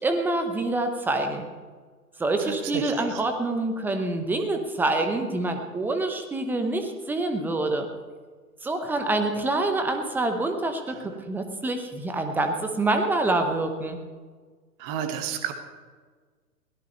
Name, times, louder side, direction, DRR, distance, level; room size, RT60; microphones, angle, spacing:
voice 1, 0.0-1.5 2.2-7.9 8.6-14.0, right 2 dB, 5° right, 6 dB, 0.9 m, -26 dB
voice 2, 2.5-3.0 11.0-11.1 14.8-15.5, right 9 dB, 25° right, 6 dB, 1.5 m, -31 dB
22.5 x 17.0 x 3.2 m, 1.5 s
figure-of-eight pair, 125°, 48 cm